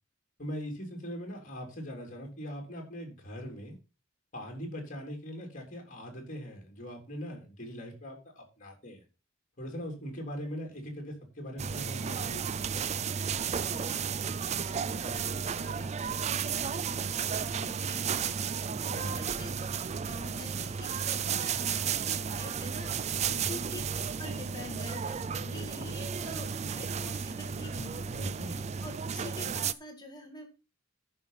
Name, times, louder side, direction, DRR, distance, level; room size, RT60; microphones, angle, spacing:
voice 1, 0.4-3.7 4.3-9.0 9.6-12.9 18.7-19.2 23.3-23.6 28.1-28.6, equal, 40° left, 2 dB, 3.7 m, -41 dB
sound 1, 11.6-29.7, right 7 dB, 35° right, 0.4 m, -33 dB
voice 2, 13.7-19.5 20.0-23.8 24.2-28.1 28.4-30.5, left 2 dB, 20° left, 3 dB, 2.1 m, -47 dB
11.0 x 5.6 x 5.8 m, 0.32 s
head